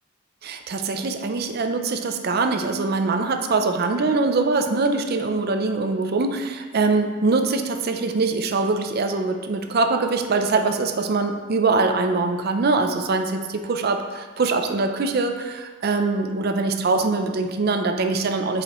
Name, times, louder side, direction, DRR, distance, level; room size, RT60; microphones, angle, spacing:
voice 1, 0.4-18.6, right 3 dB, 50° right, 6 dB, 0.5 m, -23 dB
8.4 x 4.9 x 3.0 m, 1.4 s
head